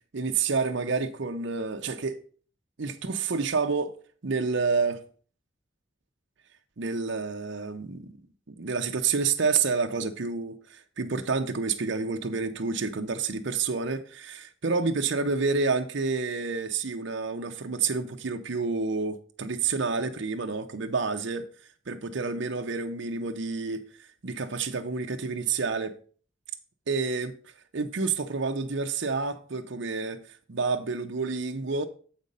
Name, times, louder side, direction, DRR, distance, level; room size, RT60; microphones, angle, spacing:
voice 1, 0.1-2.2 2.8-4.0 4.2-5.0 6.8-8.1 8.5-21.5 21.9-23.8 24.2-25.9 26.9-27.3 27.7-30.2 30.5-31.9, right 4 dB, 65° right, 0.7 m, -29 dB
7.4 x 5.2 x 5.3 m
head